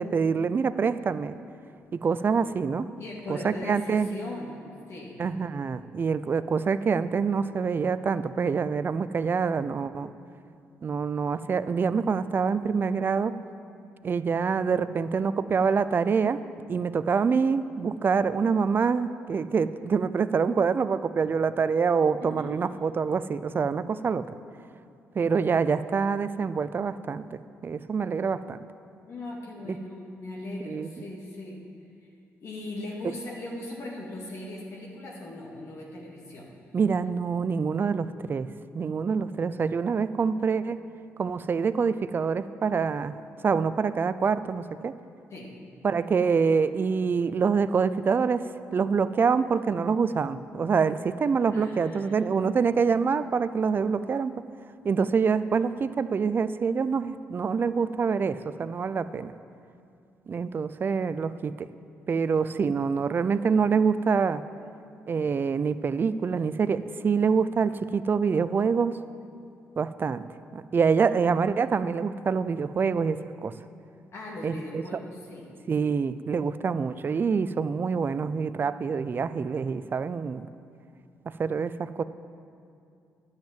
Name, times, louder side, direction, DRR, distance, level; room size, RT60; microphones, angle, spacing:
voice 1, 0.0-1.4 1.9-2.9 3.3-4.1 5.2-10.1 10.8-13.3 14.0-16.4 16.7-24.3 25.2-27.2 27.6-28.6 30.7-30.9 36.7-38.5 38.7-40.8 41.2-43.2 43.4-44.9 45.8-48.4 48.7-54.4 54.8-59.3 60.3-61.7 62.1-64.4 65.1-68.9 69.8-70.2 70.5-73.5 74.4-74.8 75.7-80.5 81.4-82.0, right 5 dB, 40° right, 13 dB, 0.4 m, -26 dB
voice 2, 3.0-4.6 4.9-5.2 22.2-22.5 29.1-31.6 32.4-36.5 45.3-45.5 51.5-52.3 74.1-75.5, left 2 dB, 60° left, -3 dB, 2.2 m, -39 dB
10.5 x 7.4 x 7.5 m, 2.5 s
cardioid pair, 75°, 5 cm